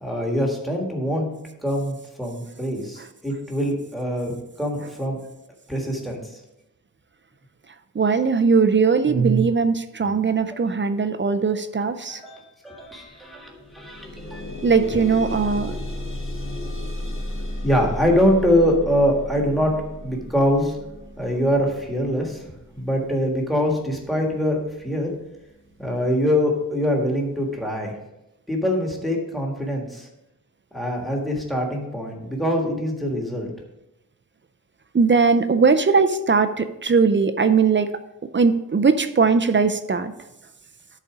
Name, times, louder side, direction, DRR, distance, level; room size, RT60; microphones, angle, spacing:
voice 1, 0.0-1.3 1.6-5.2 5.7-6.4 10.5-10.6 12.1-14.4 17.6-19.7 20.0-20.8 21.2-22.4 22.7-25.1 25.8-27.9 28.5-30.1 30.7-33.5, equal, ahead, 0 dB, 1.6 m, -24 dB
voice 2, 7.9-12.2 14.6-15.8 34.9-37.9 38.3-40.1, right 5 dB, 35° right, 9 dB, 0.5 m, -19 dB
sound 1, 12.8-13.0 13.3-24.4 25.1-25.2 25.7-25.8, left 1 dB, 40° left, 1.5 m, -34 dB
11.0 x 4.2 x 4.9 m, 0.91 s
wide cardioid pair, 115°, 32 cm